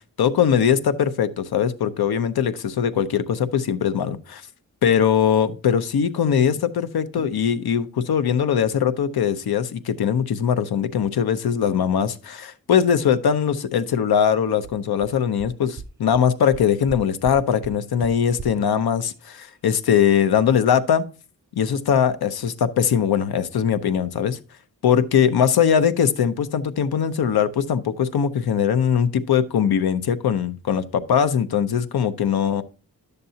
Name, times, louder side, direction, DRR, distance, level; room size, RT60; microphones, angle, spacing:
voice 1, 0.2-4.4 4.8-21.0 21.6-24.4 24.8-32.6, left 8 dB, 85° left, 0.7 m, -21 dB
sound 1, 14.6-14.7 15.0-15.1 15.4-15.5 15.8-15.9 16.1-16.2 16.5-17.0 17.2-17.4 17.6-17.7 18.0-18.1 18.4-18.5, right 7 dB, 30° right, 0.4 m, -36 dB
11.5 x 6.7 x 2.8 m
wide cardioid pair, 155°, 37 cm